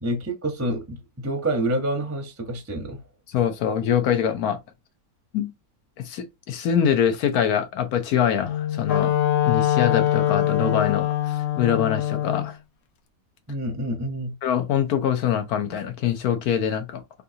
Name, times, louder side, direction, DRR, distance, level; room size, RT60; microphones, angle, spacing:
voice 1, 0.0-3.0 13.5-14.3, right 1 dB, 15° right, 0.6 m, -28 dB
voice 2, 3.3-4.6 5.3-5.5 6.0-9.1 9.4-11.1 11.6-12.5 14.4-17.0, left 9 dB, 80° left, 1.3 m, -24 dB
Wind instrument woodwind instrument, 8.4-12.5, left 13 dB, 65° left, 0.9 m, -23 dB
3.9 x 2.7 x 2.7 m
omnidirectional pair, 1.5 m